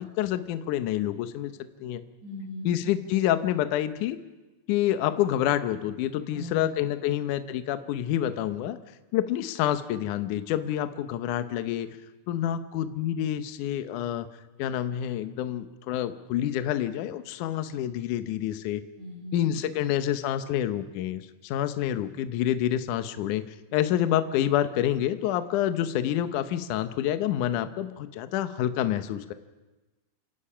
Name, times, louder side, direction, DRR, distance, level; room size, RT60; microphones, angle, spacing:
voice 1, 0.0-1.5 1.8-2.1 2.7-4.2 4.7-8.8 9.1-11.9 12.3-14.3 14.6-18.8 19.3-23.4 23.7-29.3, left 11 dB, 85° left, 10 dB, 1.7 m, -28 dB
voice 2, 2.2-2.7 6.3-6.7 19.0-19.6, left 1 dB, 80° right, -2 dB, 6.5 m, -39 dB
28.0 x 17.5 x 5.7 m, 1.1 s
omnidirectional pair, 5.0 m